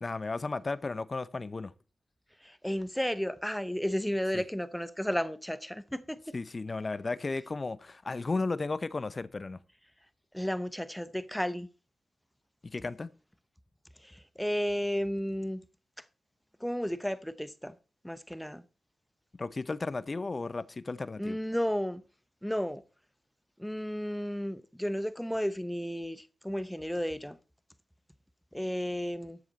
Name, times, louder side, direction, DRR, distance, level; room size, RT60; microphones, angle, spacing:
voice 1, 0.0-1.7 4.3-4.4 6.3-9.6 12.7-13.1 19.4-21.4, left 3 dB, 40° left, 0.8 m, -34 dB
voice 2, 2.4-6.2 10.3-11.7 14.0-15.6 16.6-17.8 18.0-18.6 21.2-22.0 22.4-22.8 23.6-27.4 28.5-29.4, equal, 5° left, 0.9 m, -33 dB
13.0 x 7.8 x 4.1 m
cardioid pair, 50°, 0 cm